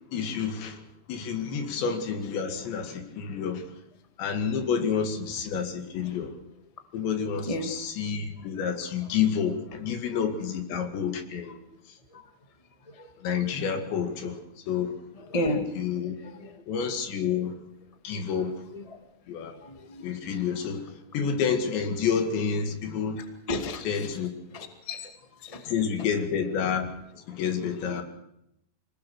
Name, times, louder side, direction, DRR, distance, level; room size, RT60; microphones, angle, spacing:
voice 1, 0.1-0.8 1.1-3.7 4.2-6.3 6.9-11.6 13.2-14.4 14.7-14.9 15.7-16.2 16.7-17.5 18.0-18.5 19.3-19.6 20.0-20.8 21.1-23.2 23.8-24.3 25.7-26.9 27.3-28.0, left 7 dB, 80° left, 6 dB, 4.4 m, -29 dB
voice 2, 15.3-15.6 16.2-16.5 18.7-18.8 19.6-20.0 23.5-23.8 24.5-25.0 25.4-25.6 27.8-28.0, left 1 dB, 35° left, 5 dB, 0.5 m, -31 dB
25.5 x 19.0 x 6.5 m, 0.81 s
omnidirectional pair, 5.1 m